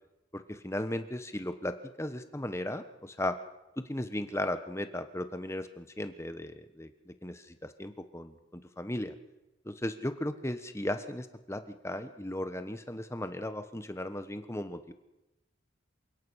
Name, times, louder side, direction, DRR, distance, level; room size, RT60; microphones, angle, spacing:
voice 1, 0.3-3.4 3.8-9.1 9.6-14.9, left 1 dB, 15° left, 9 dB, 1.2 m, -36 dB
27.5 x 17.5 x 6.4 m, 0.96 s
head